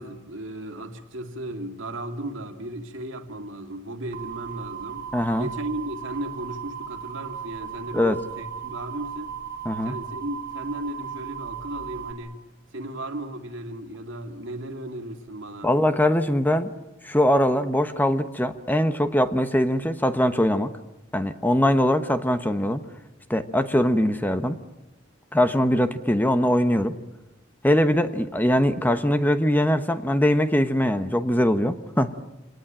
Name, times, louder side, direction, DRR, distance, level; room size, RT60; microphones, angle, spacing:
voice 1, 0.0-5.1 5.4-9.3 9.8-12.4 12.7-15.7, right 1 dB, 70° right, 2.5 m, -35 dB
sound 1, 4.1-12.1, right 8 dB, 45° right, 2.0 m, -36 dB
voice 2, 5.1-5.5 7.9-8.2 9.6-9.9 15.6-16.7 17.0-20.7 21.1-22.8 23.3-24.6 25.3-26.9 27.6-32.1, equal, 10° left, 1.1 m, -22 dB
27.0 x 19.0 x 8.9 m
head